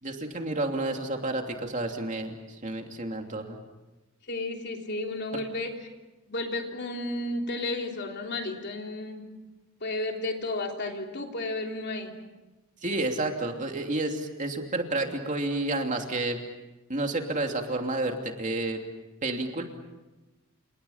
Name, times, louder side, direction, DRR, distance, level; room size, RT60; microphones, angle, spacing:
voice 1, 0.0-3.6 5.3-5.4 12.8-16.4 16.9-18.8 19.2-19.6, right 2 dB, 35° right, 3 dB, 2.9 m, -30 dB
voice 2, 4.3-5.8 6.3-9.3 9.8-12.2, left 2 dB, 50° left, 2 dB, 3.4 m, -32 dB
30.0 x 29.0 x 5.8 m, 1.1 s
head